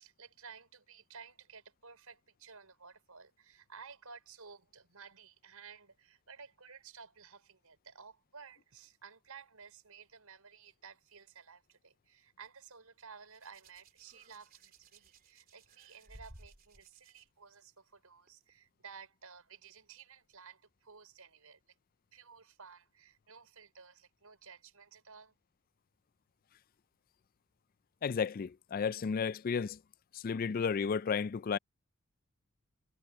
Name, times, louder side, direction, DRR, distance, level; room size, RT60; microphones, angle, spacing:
voice 1, 0.0-21.7 22.1-25.4, right 6 dB, 85° right, 5.2 m, -55 dB
Hands, 13.3-17.2 18.3-18.5, right 2 dB, 40° right, 3.5 m, -58 dB
voice 2, 28.0-29.8 30.1-31.6, left 6 dB, 40° left, 0.3 m, -33 dB
head